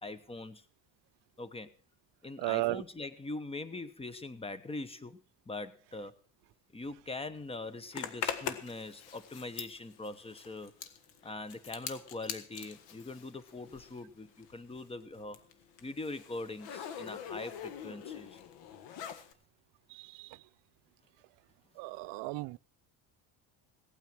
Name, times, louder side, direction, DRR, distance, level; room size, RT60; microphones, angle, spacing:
voice 1, 0.0-0.6 1.4-1.7 2.2-5.2 5.5-6.2 6.7-10.7 11.2-15.4 15.8-18.4, left 2 dB, 15° left, 15 dB, 1.1 m, -42 dB
voice 2, 2.4-2.8 20.2-20.3 21.8-22.6, right 20 dB, 70° right, 18 dB, 0.7 m, -34 dB
Zipper (clothing), 7.9-14.1 14.4-19.3, left 8 dB, 75° left, 1.8 m, -43 dB
17.0 x 9.2 x 6.1 m, 0.38 s
cardioid pair, 130°, 44 cm